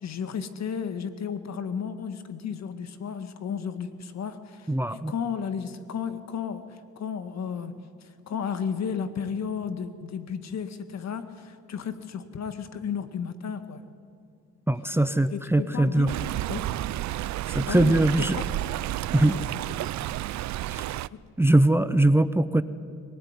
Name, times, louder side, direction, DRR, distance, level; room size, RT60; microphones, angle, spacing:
voice 1, 0.0-7.7 8.3-13.8 15.3-16.2 16.5-16.7 17.7-18.5 19.2-19.4 21.1-21.2, left 7 dB, 60° left, 10 dB, 2.0 m, -33 dB
voice 2, 4.7-5.1 14.7-16.1 17.5-18.4 19.1-19.4 20.7-20.8 21.4-22.6, right 1 dB, 10° right, 13 dB, 0.8 m, -21 dB
Stream, 16.1-21.1, right 15 dB, 65° right, 0.5 m, -31 dB
23.5 x 19.0 x 9.7 m, 2.3 s
cardioid pair, 90°, 30 cm